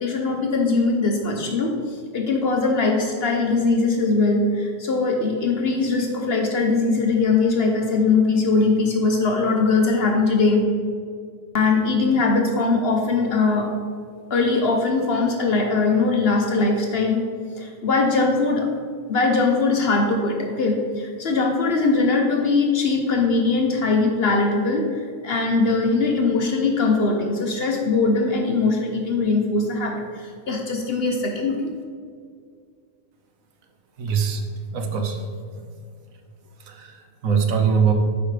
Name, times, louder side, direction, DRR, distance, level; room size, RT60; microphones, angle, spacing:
voice 1, 0.0-10.6 11.5-13.7 14.3-17.2 17.6-18.7 19.1-31.6, left 3 dB, 55° left, 2 dB, 0.8 m, -21 dB
voice 2, 34.0-34.4 34.7-35.3 36.7-37.9, right 6 dB, 75° right, 4 dB, 1.2 m, -22 dB
8.2 x 5.0 x 3.2 m, 2.1 s
omnidirectional pair, 1.5 m